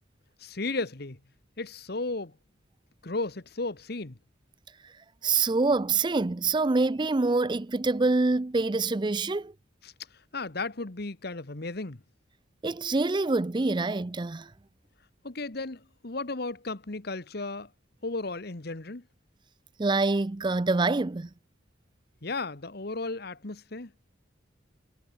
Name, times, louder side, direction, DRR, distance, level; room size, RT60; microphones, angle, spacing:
voice 1, 0.4-1.2 1.6-2.4 3.0-4.2 9.8-12.0 15.2-17.7 18.0-19.0 22.2-23.9, left 3 dB, 55° left, 1.3 m, -34 dB
voice 2, 5.2-9.5 12.6-14.5 19.8-21.3, right 3 dB, 25° right, 0.5 m, -26 dB
head